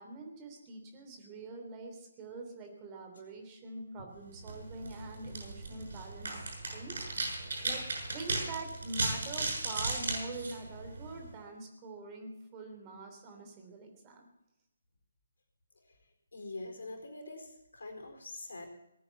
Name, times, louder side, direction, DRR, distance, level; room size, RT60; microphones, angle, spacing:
voice 1, 0.0-7.8 8.1-14.3, right 3 dB, 25° right, 4 dB, 3.1 m, -45 dB
sound 1, 4.3-11.3, right 2 dB, 60° right, 7.0 m, -36 dB
voice 2, 16.3-18.7, left 2 dB, 65° left, 4 dB, 4.3 m, -44 dB
19.0 x 9.6 x 7.1 m, 0.85 s
figure-of-eight pair, 140°, 0 cm